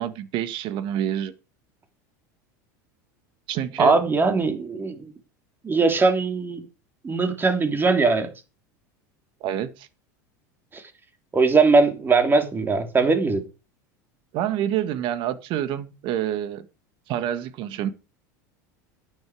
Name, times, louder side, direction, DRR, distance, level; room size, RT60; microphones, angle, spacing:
voice 1, 0.0-1.3 3.5-4.0 9.4-9.9 14.3-16.7 17.1-17.9, right 11 dB, 55° right, 1.8 m, -27 dB
voice 2, 3.8-5.1 5.6-6.6 7.0-8.3 10.7-10.8 11.3-13.4, right 4 dB, 20° right, 3.2 m, -20 dB
12.0 x 11.0 x 4.9 m
hypercardioid pair, 100°, 10 cm